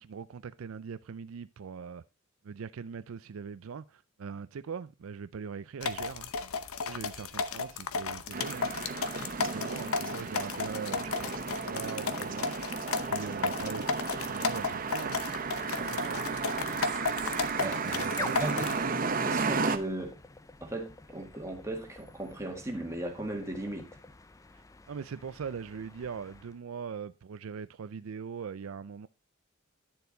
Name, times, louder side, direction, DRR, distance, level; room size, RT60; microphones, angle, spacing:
voice 1, 0.0-2.0 2.4-6.3 6.8-8.7 9.4-12.6 13.1-14.0 14.3-15.2 15.8-16.3 17.6-18.8 19.6-19.7 24.9-29.1, right 6 dB, 75° right, 0.4 m, -41 dB
sound 1, 5.8-18.8, left 4 dB, 85° left, 0.8 m, -34 dB
sound 2, 8.3-19.8, right 4 dB, 40° right, 0.8 m, -34 dB
sound 3, 13.2-26.6, left 3 dB, 15° left, 0.4 m, -49 dB
voice 2, 18.2-18.7 19.3-20.2 20.6-23.9, right 1 dB, 15° right, 1.7 m, -37 dB
10.5 x 6.9 x 3.9 m
head